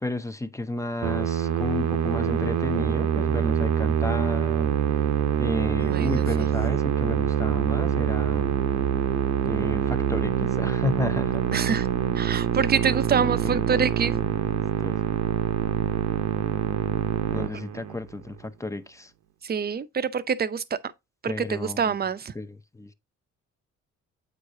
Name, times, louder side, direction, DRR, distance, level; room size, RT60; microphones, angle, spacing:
voice 1, 0.0-4.7 5.4-8.5 9.4-11.6 13.5-13.7 14.8-15.0 17.3-19.1 21.3-21.8 22.4-22.5 22.8-22.9, left 2 dB, 10° left, 0.7 m, -32 dB
Musical instrument, 1.0-18.1, right 9 dB, 65° right, 0.8 m, -25 dB
voice 2, 5.8-6.5 11.5-11.9 12.2-14.2 19.4-20.6 21.2-22.3, right 6 dB, 30° right, 0.6 m, -26 dB
8.0 x 4.8 x 2.7 m
cardioid pair, 90°, 30 cm